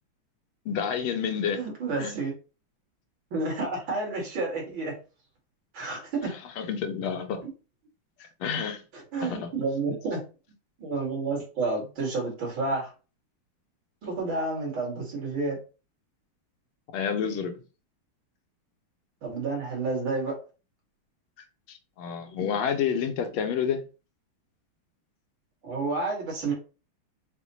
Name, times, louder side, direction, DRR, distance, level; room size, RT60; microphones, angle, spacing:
voice 1, 0.7-1.6 2.0-2.1 6.6-7.5 8.2-8.8 9.2-9.5 16.9-17.6 21.7-23.9, left 7 dB, 85° left, 1.5 m, -29 dB
voice 2, 1.5-2.3 3.3-4.9 5.7-6.3 8.9-10.2 10.8-12.9 14.0-15.6 19.2-20.4 25.6-26.5, right 3 dB, 65° right, 2.5 m, -30 dB
6.0 x 2.1 x 2.8 m
omnidirectional pair, 2.3 m